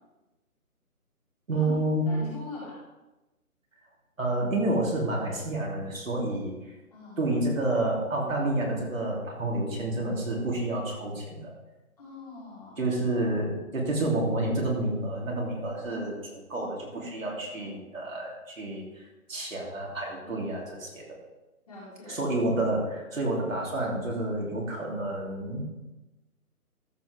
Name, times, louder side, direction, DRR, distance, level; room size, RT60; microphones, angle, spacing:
voice 1, 1.5-2.1 4.2-6.7 7.2-11.5 12.8-21.2 22.1-25.6, right 2 dB, 60° right, -3 dB, 3.1 m, -29 dB
voice 2, 2.1-2.8 6.9-7.2 12.0-12.8 20.2-20.4 21.7-22.2, left 3 dB, 25° left, -9 dB, 3.7 m, -42 dB
14.0 x 7.6 x 3.5 m, 1.0 s
hypercardioid pair, 180°, 45 cm